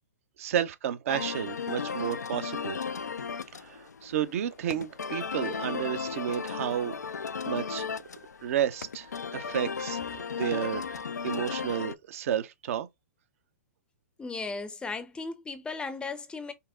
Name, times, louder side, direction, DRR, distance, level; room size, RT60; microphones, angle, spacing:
voice 1, 0.4-2.8 3.5-6.9 7.4-7.9 8.4-12.9, right 10 dB, 55° right, 0.7 m, -32 dB
sound 1, 1.1-11.9, left 6 dB, 90° left, 0.4 m, -35 dB
voice 2, 14.2-16.5, left 4 dB, 10° left, 0.6 m, -36 dB
5.5 x 2.0 x 3.7 m
hypercardioid pair, 120°, 9 cm